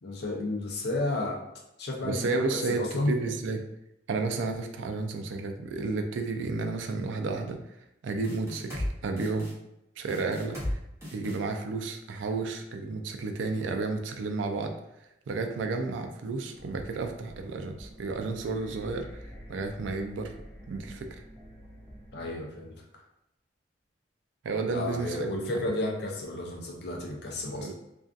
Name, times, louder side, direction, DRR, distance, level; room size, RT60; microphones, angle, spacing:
voice 1, 0.0-1.4 1.8-2.4 2.7-3.1 22.1-22.8 24.7-27.7, left 2 dB, 60° left, 0 dB, 0.5 m, -32 dB
voice 2, 2.0-3.7 4.1-7.6 8.0-9.5 10.0-10.8 11.1-14.7 15.3-19.1 19.5-20.3 20.7-21.2 24.4-25.6 27.6-27.7, right 3 dB, 85° right, 5 dB, 0.3 m, -32 dB
sound 1, 8.2-8.9 9.2-9.5 10.1-10.7 11.0-11.4, left 1 dB, 15° right, 0.7 m, -34 dB
sound 2, 16.5-22.4, equal, 10° left, 0.4 m, -47 dB
2.5 x 2.3 x 2.3 m, 0.86 s
head